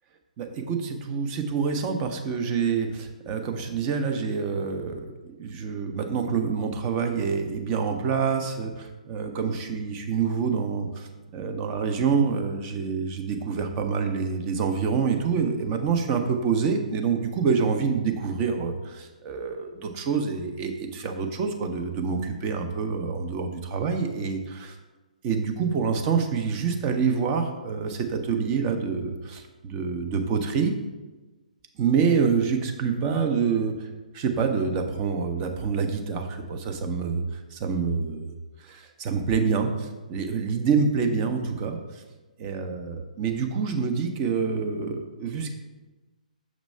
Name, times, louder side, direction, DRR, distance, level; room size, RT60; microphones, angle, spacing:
voice 1, 0.4-10.9 11.3-18.7 19.2-24.8 25.2-30.7 31.8-33.7 34.1-38.3 38.6-41.8 42.4-45.5, right 5 dB, 25° right, 5 dB, 0.6 m, -26 dB
6.3 x 3.0 x 5.4 m, 1.2 s
figure-of-eight pair, 135°, 4 cm